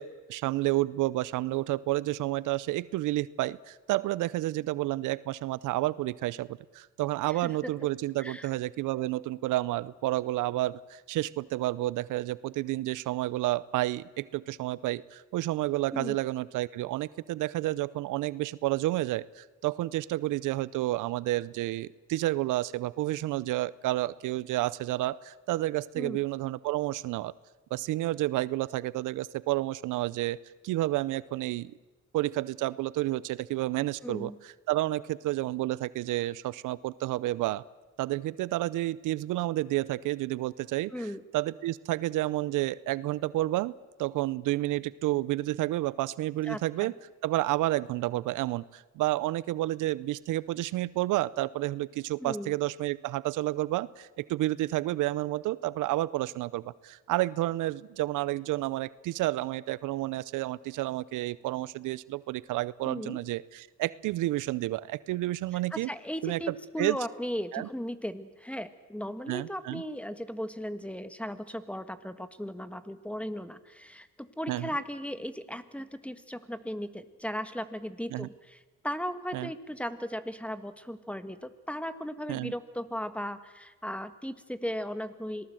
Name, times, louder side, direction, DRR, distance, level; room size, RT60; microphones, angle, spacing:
voice 1, 0.0-6.5 6.7-27.3 27.7-30.4 30.6-31.7 32.1-34.3 34.7-37.6 38.0-40.9 41.3-43.7 44.0-46.9 47.2-65.9 66.2-67.0 67.5-67.7 69.3-69.8 74.5-74.7 78.1-78.3 79.3-79.5 82.3-82.5, right 16 dB, 85° right, 20 dB, 0.7 m, -30 dB
voice 2, 7.3-7.7 8.2-8.5 15.9-16.2 25.9-26.2 34.0-34.4 40.9-41.2 46.4-46.9 52.2-52.6 62.8-63.2 65.5-85.5, equal, 5° left, 12 dB, 1.5 m, -37 dB
26.5 x 18.5 x 7.8 m, 1.2 s
cardioid pair, 90°, 30 cm